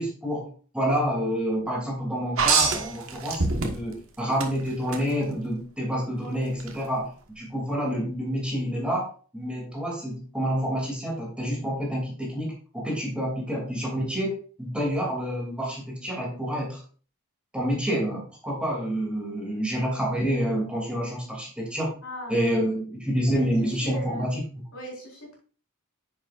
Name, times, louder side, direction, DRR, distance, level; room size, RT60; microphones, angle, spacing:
voice 1, 0.0-16.8 17.5-21.9 22.3-24.4, equal, 5° right, -2 dB, 2.6 m, -28 dB
sound 1, 2.4-4.0 4.4-5.0 6.6-6.7, right 4 dB, 65° right, 1.4 m, -24 dB
voice 2, 22.0-22.4 23.3-23.5 23.8-24.3 24.7-25.3, equal, 70° left, -2 dB, 4.4 m, -38 dB
9.8 x 7.1 x 2.5 m, 0.40 s
head